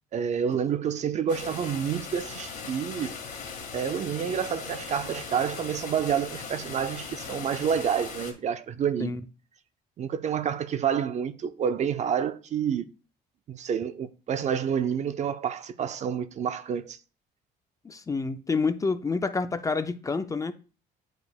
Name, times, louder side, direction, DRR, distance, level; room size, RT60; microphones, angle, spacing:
voice 1, 0.1-3.1 3.7-9.1 10.0-12.9 13.5-17.0, right 8 dB, 45° right, 0.5 m, -28 dB
sound 1, 1.3-8.3, left 5 dB, 60° left, 1.8 m, -39 dB
voice 2, 17.8-20.5, left 4 dB, 20° left, 0.4 m, -28 dB
8.7 x 4.7 x 2.3 m
cardioid pair, 110°, 17 cm